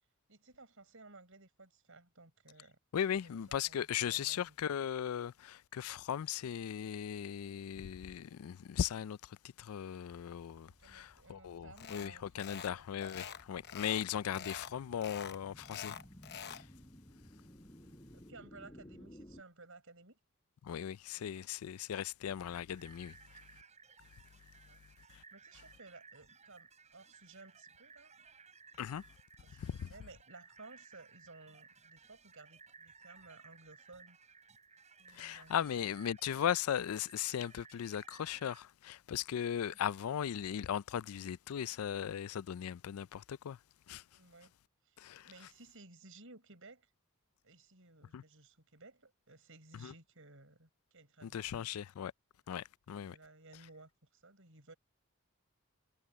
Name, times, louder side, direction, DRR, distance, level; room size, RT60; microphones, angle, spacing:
voice 1, 0.3-2.8 3.6-4.5 10.8-12.4 12.7-12.8 14.2-14.5 17.8-20.2 21.2-21.5 24.7-24.8 25.1-28.1 29.4-34.2 35.0-35.9 39.8-39.9 44.1-44.5 44.8-46.9 47.4-51.7 53.0-54.7, right 3 dB, 65° right, 7.2 m, -57 dB
voice 2, 2.9-16.0 16.5-16.7 20.6-23.6 25.1-25.2 28.8-29.1 29.6-29.9 35.1-43.6 43.9-44.0 45.0-45.3 48.1-48.2 49.7-49.9 51.2-52.1 52.5-53.2, left 9 dB, 85° left, 0.4 m, -38 dB
sound 1, 10.5-19.4, equal, 20° left, 6.6 m, -58 dB
sound 2, 11.8-12.1 12.4-12.7 13.0-14.1 14.3-14.7 15.0-16.6, left 8 dB, 50° left, 0.9 m, -46 dB
sound 3, 22.7-38.6, right 5 dB, 35° right, 7.5 m, -59 dB
head